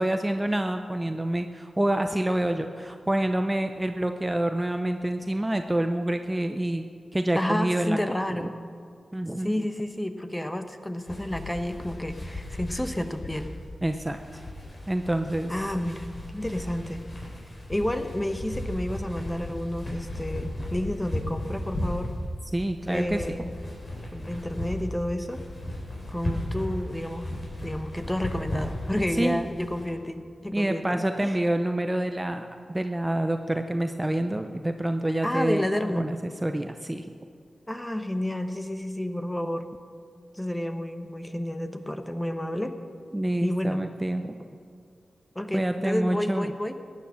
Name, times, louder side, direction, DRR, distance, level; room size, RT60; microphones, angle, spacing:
voice 1, 0.0-6.8 7.1-8.0 8.4-8.5 9.1-9.6 13.8-14.2 14.9-15.7 22.5-23.2 29.2-29.4 30.5-37.1 43.1-44.4 45.5-46.5, right 1 dB, 15° right, 7 dB, 0.6 m, -27 dB
voice 2, 7.3-8.5 9.4-13.5 15.5-16.1 16.3-17.0 17.7-22.1 22.9-23.5 24.1-25.4 26.1-27.3 27.6-31.4 35.2-36.1 37.7-39.7 40.3-42.8 43.4-43.8 45.3-46.7, left 1 dB, 10° left, 8 dB, 1.1 m, -30 dB
sound 1, 11.1-29.9, left 1 dB, 50° left, 4.4 m, -36 dB
15.0 x 9.6 x 6.3 m, 2.1 s
cardioid pair, 60°, 0 cm